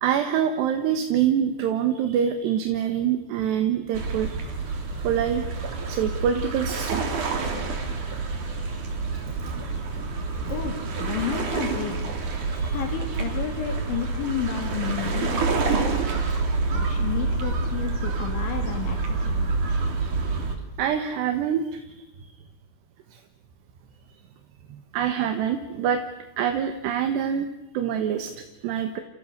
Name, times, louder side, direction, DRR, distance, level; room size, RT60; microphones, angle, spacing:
voice 1, 0.0-4.4 5.0-7.0 12.5-12.8 20.8-22.3 24.7-26.0 26.4-27.5 27.7-29.0, right 8 dB, 65° right, 7 dB, 3.2 m, -25 dB
sound 1, 3.9-20.6, right 4 dB, 40° right, 4.3 m, -27 dB
voice 2, 10.5-12.0 12.7-15.4 15.7-16.0 16.7-19.5, left 9 dB, 65° left, 4 dB, 4.5 m, -31 dB
30.0 x 29.5 x 6.8 m, 0.96 s
omnidirectional pair, 5.9 m